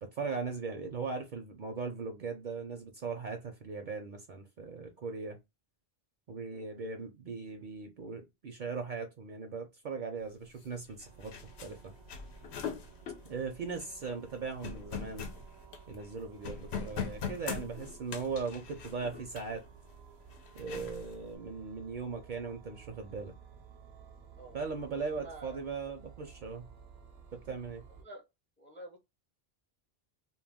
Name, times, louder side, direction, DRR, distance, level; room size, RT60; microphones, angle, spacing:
voice 1, 0.0-5.4 6.3-11.4 11.6-11.9 13.2-15.3 15.9-19.6 20.5-23.3 24.5-26.7 27.3-27.8, right 4 dB, 60° right, 0.6 m, -39 dB
voice 2, 6.5-6.8 16.6-16.7 24.4-24.6 25.2-25.6 28.0-28.2 28.6-29.0, right 2 dB, 15° left, 0.4 m, -49 dB
sound 1, 10.6-10.7 10.9-16.1 16.4-19.6 20.3-21.2, left 6 dB, 90° left, 0.9 m, -41 dB
sound 2, 11.0-28.0, right 6 dB, 80° right, 0.9 m, -55 dB
2.3 x 2.2 x 3.3 m
omnidirectional pair, 1.1 m